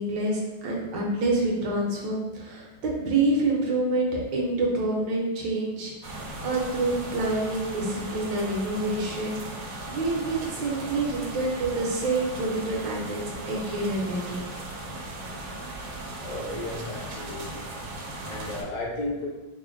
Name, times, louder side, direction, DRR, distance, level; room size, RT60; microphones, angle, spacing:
voice 1, 0.0-9.4 9.9-14.4, right 2 dB, 70° right, -2 dB, 1.2 m, -27 dB
sound 1, 6.0-18.6, right 2 dB, 90° right, 1.4 m, -37 dB
voice 2, 16.2-17.6 18.2-19.3, left 2 dB, 65° left, -4 dB, 1.1 m, -34 dB
5.0 x 2.1 x 2.5 m, 1.1 s
omnidirectional pair, 2.2 m